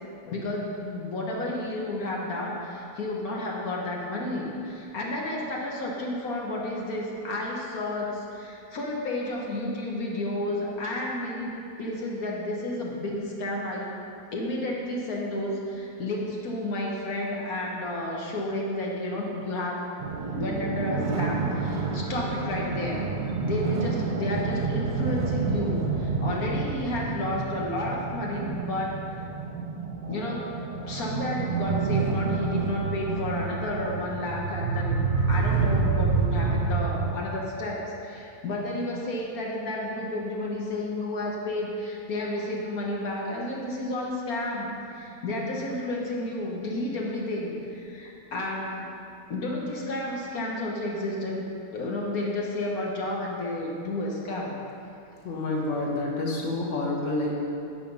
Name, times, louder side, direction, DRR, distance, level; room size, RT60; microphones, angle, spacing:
voice 1, 0.3-11.5 11.8-13.9 14.3-19.8 20.4-23.0 23.4-29.0 30.1-30.5 30.9-35.0 35.3-48.9 49.3-54.6, left 1 dB, 80° left, -2 dB, 1.8 m, -31 dB
sound 1, 20.0-37.1, right 4 dB, 40° right, 0.8 m, -28 dB
voice 2, 55.2-57.5, left 2 dB, 60° left, -2 dB, 1.7 m, -28 dB
15.0 x 5.1 x 5.5 m, 2.7 s
omnidirectional pair, 1.5 m